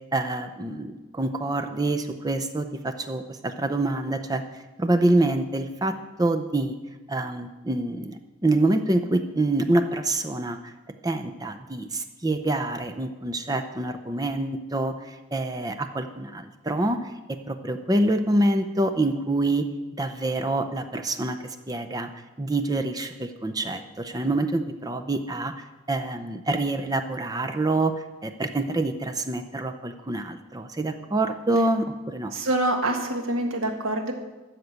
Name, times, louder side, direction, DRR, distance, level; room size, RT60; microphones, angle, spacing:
voice 1, 0.1-6.8 7.1-10.7 11.0-19.7 20.0-22.1 22.4-32.3, right 2 dB, 20° right, 7 dB, 0.6 m, -26 dB
voice 2, 32.3-34.1, right 1 dB, 80° right, 3 dB, 1.8 m, -26 dB
13.0 x 5.9 x 8.1 m, 1.2 s
head